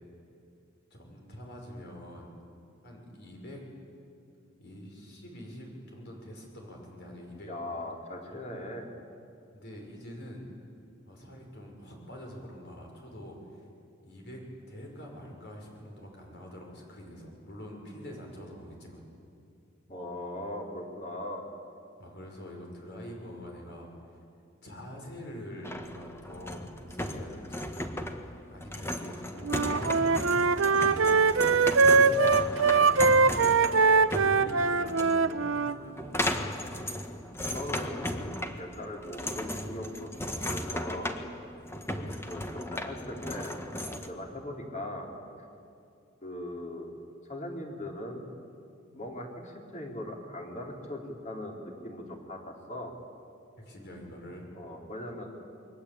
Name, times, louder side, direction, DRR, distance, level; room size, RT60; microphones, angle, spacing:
voice 1, 0.9-2.4 2.8-3.6 4.6-7.5 8.3-8.4 9.5-10.5 11.1-13.7 14.0-14.4 14.7-19.0 22.0-24.2 24.6-27.7 28.2-36.4 41.8-42.0 53.6-54.5, equal, 60° left, 0 dB, 5.9 m, -45 dB
voice 2, 7.5-8.9 19.9-21.4 37.4-41.1 42.3-43.6 44.0-45.1 46.2-46.9 47.3-48.3 48.9-52.9 54.6-55.3, left 1 dB, 40° left, 0 dB, 4.0 m, -39 dB
sound 1, 25.6-44.1, left 1 dB, 15° left, 1.5 m, -36 dB
Wind instrument woodwind instrument, 29.4-35.8, right 4 dB, 70° right, 0.8 m, -22 dB
29.0 x 22.5 x 8.7 m, 2.5 s
head